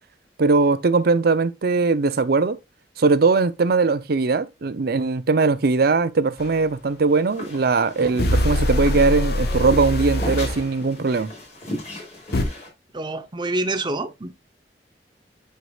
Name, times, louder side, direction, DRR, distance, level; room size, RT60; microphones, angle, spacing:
voice 1, 0.4-2.6 3.0-11.3, right 4 dB, 60° right, 0.6 m, -20 dB
sound 1, 6.4-6.5 8.2-10.7 12.3-12.4, left 1 dB, 65° left, 1.3 m, -23 dB
sound 2, 6.9-12.7, left 1 dB, 40° left, 3.2 m, -37 dB
voice 2, 12.9-14.3, right 2 dB, 25° right, 0.8 m, -27 dB
9.4 x 4.7 x 2.3 m
head